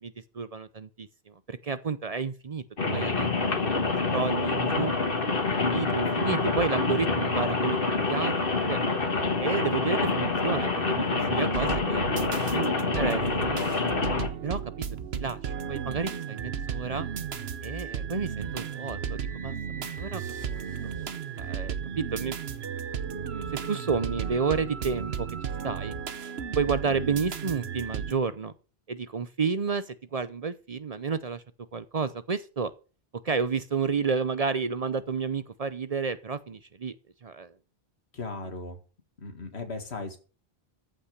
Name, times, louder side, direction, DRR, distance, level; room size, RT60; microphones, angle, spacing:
voice 1, 0.0-2.6 2.9-3.3 3.7-3.8 4.1-4.9 5.6-7.8 8.1-8.8 9.4-12.1 12.4-13.6 14.4-14.6 15.1-17.1 17.6-20.2 21.4-22.4 23.3-25.3 25.6-26.0 26.6-28.5 28.9-31.4 31.7-32.7 33.2-37.0 37.2-37.5, right 5 dB, 45° right, 13 dB, 0.6 m, -31 dB
Rain, 2.8-14.3, left 3 dB, 60° left, 1.9 m, -27 dB
sound 1, 11.5-28.1, right 7 dB, 75° right, 1.1 m, -34 dB
voice 2, 38.1-38.8 39.2-40.2, left 3 dB, 85° left, 6 dB, 2.3 m, -37 dB
14.0 x 5.7 x 6.5 m, 0.36 s
omnidirectional pair, 1.1 m